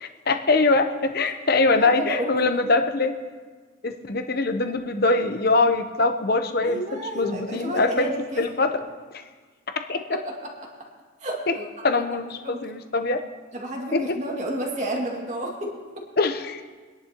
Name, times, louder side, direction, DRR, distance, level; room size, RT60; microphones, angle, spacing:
voice 1, 0.0-3.1 3.8-8.1 8.4-8.8 9.9-10.0 11.5-11.6 11.8-13.2 13.9-14.2 16.2-16.6, left 3 dB, 50° left, 7 dB, 0.8 m, -23 dB
voice 2, 1.7-2.4 6.6-8.4 10.2-10.5 11.2-11.8 12.4-12.6 13.5-16.0, right 1 dB, 35° right, 0 dB, 2.2 m, -31 dB
25.0 x 10.5 x 3.0 m, 1.4 s
head